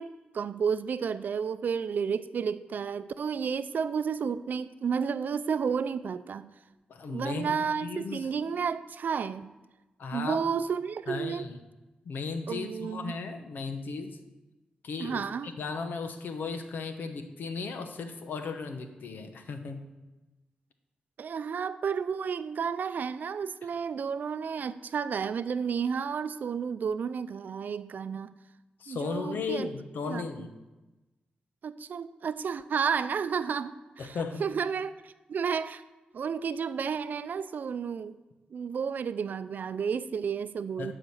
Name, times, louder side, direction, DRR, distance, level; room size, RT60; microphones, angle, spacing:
voice 1, 0.0-6.5 7.1-9.5 10.1-11.5 12.5-13.1 15.0-15.5 21.2-28.3 28.9-29.7 30.1-30.2 31.6-34.1 34.4-35.8 36.1-38.2 38.5-40.9, right 6 dB, 70° right, 13 dB, 0.5 m, -31 dB
voice 2, 6.9-8.3 10.0-10.4 11.1-11.6 12.0-14.2 14.8-19.9 28.8-30.5 34.0-34.4 40.8-40.9, left 4 dB, 80° left, 7 dB, 1.0 m, -36 dB
11.5 x 5.1 x 7.2 m, 1.1 s
cardioid pair, 65°, 3 cm